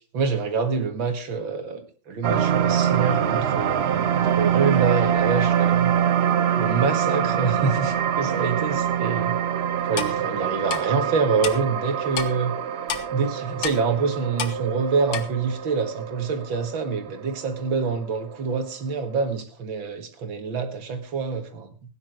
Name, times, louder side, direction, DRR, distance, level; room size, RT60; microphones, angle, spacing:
voice 1, 0.1-5.9 6.6-9.4 9.8-12.5 13.1-21.7, right 5 dB, 80° right, 7 dB, 2.7 m, -26 dB
sound 1, 2.2-18.7 19.1-19.3, right 9 dB, 60° right, 0.7 m, -25 dB
Clock, 10.0-10.1 10.7-10.8 11.4-11.5 12.1-12.3 12.9-13.0 13.6-13.8 14.4-14.5 15.1-15.2, left 7 dB, 70° left, 2.0 m, -28 dB
16.5 x 10.0 x 4.8 m, 0.37 s
omnidirectional pair, 2.1 m